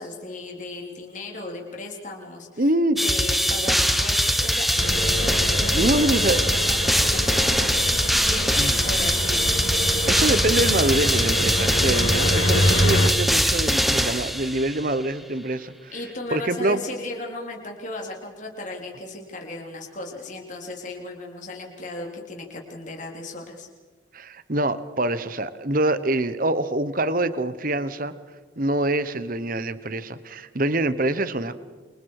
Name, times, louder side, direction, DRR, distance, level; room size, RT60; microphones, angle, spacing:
voice 1, 0.0-2.7 3.0-7.5 8.2-9.6 15.9-23.7, left 2 dB, 40° left, 0 dB, 3.7 m, -36 dB
voice 2, 2.6-3.0 5.7-6.4 8.6-8.7 10.1-15.9 16.3-16.8 24.1-28.1 28.6-31.6, right 1 dB, 45° right, 13 dB, 1.1 m, -25 dB
sound 1, 3.0-14.9, equal, ahead, 1.3 m, -22 dB
sound 2, 4.8-13.1, left 1 dB, 70° left, 3.2 m, -26 dB
28.5 x 26.5 x 4.9 m, 1.4 s
head